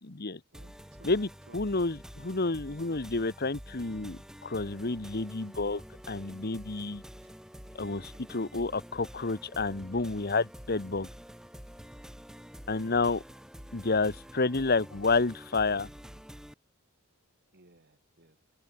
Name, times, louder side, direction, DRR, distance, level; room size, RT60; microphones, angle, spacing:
voice 1, 0.0-0.4 1.0-7.0 7.7-11.1 12.7-13.2 13.7-15.9, left 3 dB, 45° left, 1.2 m, -30 dB
sound 1, 0.5-16.5, equal, 5° right, 1.5 m, -48 dB
voice 2, 0.5-1.1 1.5-1.6 12.9-13.4 17.5-18.4, right 2 dB, 50° right, 3.1 m, -59 dB
open air
head